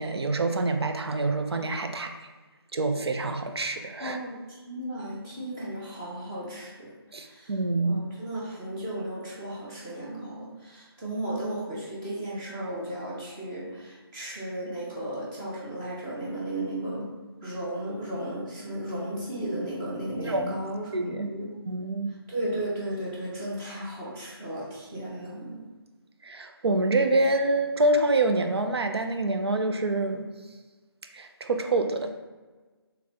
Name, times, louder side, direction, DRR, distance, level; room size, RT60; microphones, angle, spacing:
voice 1, 0.0-2.1 2.7-4.2 7.1-8.0 20.2-20.6 20.9-21.3 21.7-22.1 26.2-30.3 31.1-32.1, right 2 dB, 75° right, 6 dB, 0.5 m, -26 dB
voice 2, 4.0-7.5 7.8-17.1 17.4-21.5 22.3-25.6, right 1 dB, 10° right, -7 dB, 0.6 m, -35 dB
3.9 x 3.3 x 2.9 m, 1.3 s
figure-of-eight pair, 160°, 14 cm